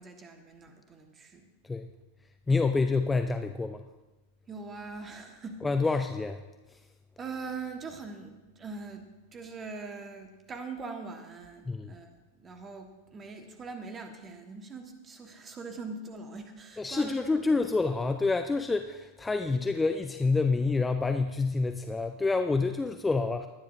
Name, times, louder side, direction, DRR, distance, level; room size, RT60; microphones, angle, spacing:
voice 1, 0.0-1.5 4.5-5.6 7.2-12.1 12.4-17.4, right 4 dB, 20° right, 5 dB, 1.5 m, -42 dB
voice 2, 2.5-3.8 5.6-6.4 11.7-11.9 16.8-23.5, left 3 dB, 10° left, 7 dB, 0.5 m, -27 dB
21.0 x 9.9 x 2.7 m, 1.2 s
figure-of-eight pair, 90°, 0 cm